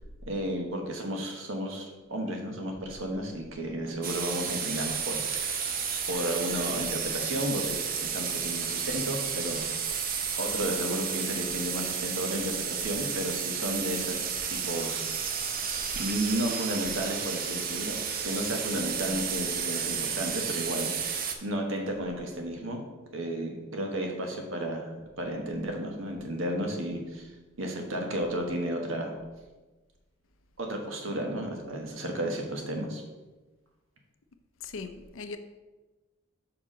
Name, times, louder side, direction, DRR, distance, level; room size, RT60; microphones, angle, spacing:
voice 1, 0.3-5.7 6.1-10.0 10.3-15.3 15.9-18.0 18.2-21.1 21.4-22.8 23.1-24.9 25.2-27.3 27.6-29.1 30.6-33.0, right 1 dB, 75° right, 2 dB, 1.2 m, -33 dB
sound 1, 4.0-21.4, right 7 dB, 45° right, 0.6 m, -32 dB
voice 2, 34.6-35.4, left 4 dB, 75° left, 9 dB, 0.6 m, -39 dB
5.9 x 4.7 x 5.0 m, 1.2 s
head